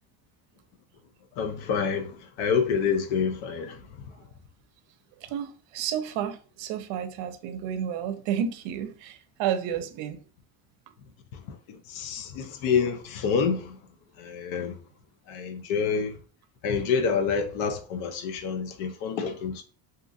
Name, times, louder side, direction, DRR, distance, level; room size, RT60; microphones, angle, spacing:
voice 1, 1.4-3.8 11.3-13.8 14.2-14.8 15.3-16.2 16.6-19.6, left 6 dB, 80° left, 0.7 m, -28 dB
voice 2, 5.2-10.2, right 9 dB, 65° right, 0.5 m, -31 dB
2.6 x 2.5 x 2.5 m
cardioid pair, 125°, 49 cm